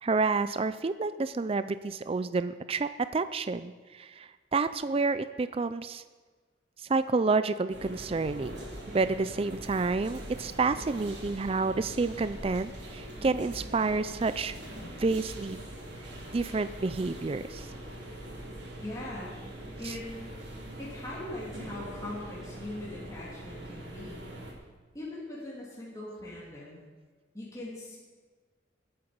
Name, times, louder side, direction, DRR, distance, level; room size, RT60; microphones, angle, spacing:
voice 1, 0.0-6.0 6.8-14.5 15.0-15.6 16.3-17.7 19.8-20.0, right 3 dB, 30° right, 13 dB, 0.4 m, -29 dB
sound 1, 7.7-24.5, right 1 dB, 75° right, 3.4 m, -43 dB
voice 2, 18.8-19.4 19.8-20.3 20.8-24.3 24.9-26.8 27.3-28.0, left 1 dB, 20° left, -6 dB, 3.1 m, -41 dB
20.0 x 8.8 x 5.2 m, 1.4 s
head